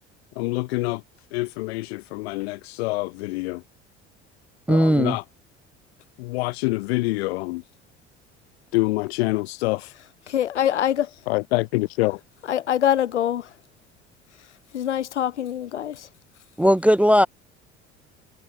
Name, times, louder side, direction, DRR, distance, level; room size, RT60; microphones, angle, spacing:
voice 1, 0.4-1.0 1.3-3.6 4.7-5.2 6.2-7.6 8.7-9.9 11.3-12.2, left 23 dB, 65° left, 0.5 m, -26 dB
voice 2, 4.7-5.2 16.6-17.3, equal, 5° right, 0.4 m, -17 dB
voice 3, 10.3-11.1 12.5-13.5 14.7-16.1, left 10 dB, 80° left, 1.0 m, -24 dB
figure-of-eight pair, 60°, 35 cm